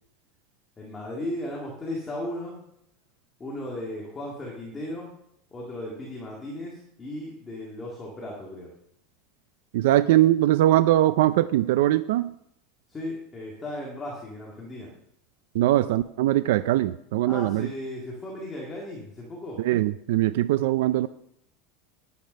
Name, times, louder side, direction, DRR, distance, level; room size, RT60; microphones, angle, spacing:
voice 1, 0.8-2.6 3.4-5.1 5.5-8.7 12.9-14.9 17.3-19.6, left 1 dB, 10° left, -3 dB, 2.0 m, -36 dB
voice 2, 9.7-12.3 15.5-17.7 19.6-21.1, right 14 dB, 65° right, 13 dB, 0.4 m, -21 dB
10.5 x 9.4 x 5.4 m, 0.74 s
supercardioid pair, 175°, 0 cm